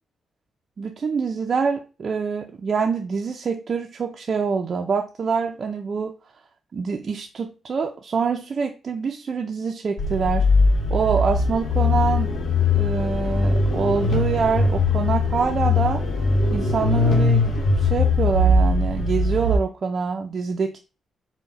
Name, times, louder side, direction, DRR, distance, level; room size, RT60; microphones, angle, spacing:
voice 1, 0.8-6.1 6.7-10.5 10.9-12.4 12.7-16.0 16.5-20.8, right 5 dB, 45° right, 3 dB, 0.4 m, -25 dB
sound 1, 10.0-19.6, left 2 dB, 65° left, 1.0 m, -20 dB
4.5 x 2.1 x 3.9 m, 0.32 s
cardioid pair, 125°, 0 cm